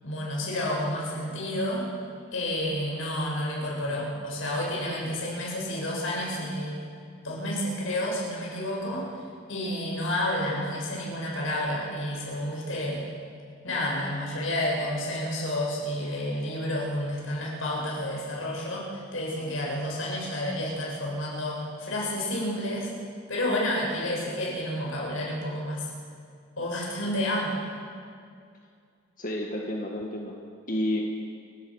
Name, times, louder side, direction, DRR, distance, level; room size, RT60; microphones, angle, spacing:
voice 1, 0.0-1.9 2.3-6.8 7.2-9.1 9.5-13.0 13.6-22.9 23.3-25.9 26.6-27.5, left 1 dB, 80° left, -3 dB, 7.4 m, -30 dB
voice 2, 29.2-30.4 30.7-31.0, left 1 dB, 40° left, -1 dB, 1.7 m, -30 dB
29.5 x 17.0 x 6.4 m, 2.3 s
head